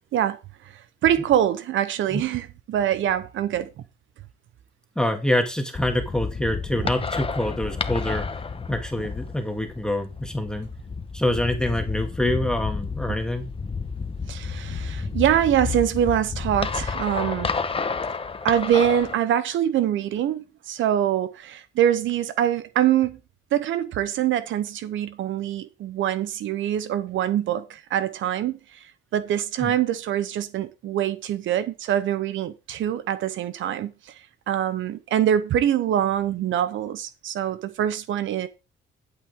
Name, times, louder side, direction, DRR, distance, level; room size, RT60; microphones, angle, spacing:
voice 1, 0.7-3.7 14.3-17.5 18.4-23.2 23.5-28.8 29.1-38.5, right 10 dB, 75° right, 0.9 m, -24 dB
voice 2, 5.0-8.3 8.7-10.7 11.1-13.5 29.6-29.8, left 1 dB, 5° left, 2.2 m, -26 dB
sound 1, 5.7-19.1, left 4 dB, 25° left, 1.2 m, -31 dB
11.5 x 8.1 x 3.7 m
cardioid pair, 90°, 20 cm